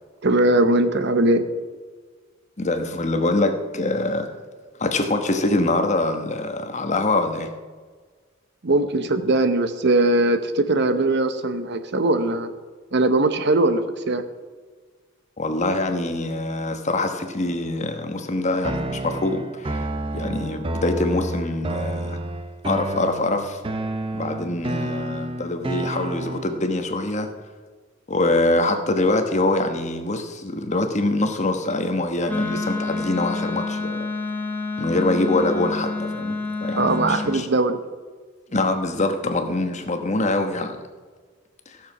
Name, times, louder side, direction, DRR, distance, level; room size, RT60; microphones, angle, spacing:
voice 1, 0.2-1.5 8.6-12.5 12.9-14.2 36.8-37.8, right 2 dB, 60° right, 10 dB, 0.8 m, -20 dB
voice 2, 2.6-4.3 4.8-7.5 15.4-19.9 20.1-22.2 22.6-23.6 24.1-27.3 28.1-34.1 34.8-36.4 36.6-37.5 38.5-40.8, left 2 dB, 35° left, 6 dB, 1.1 m, -24 dB
sound 1, 18.6-26.6, right 1 dB, 25° right, 0.6 m, -30 dB
Wind instrument woodwind instrument, 32.3-37.4, left 3 dB, 10° left, 1.4 m, -28 dB
15.0 x 6.7 x 6.0 m, 1.5 s
head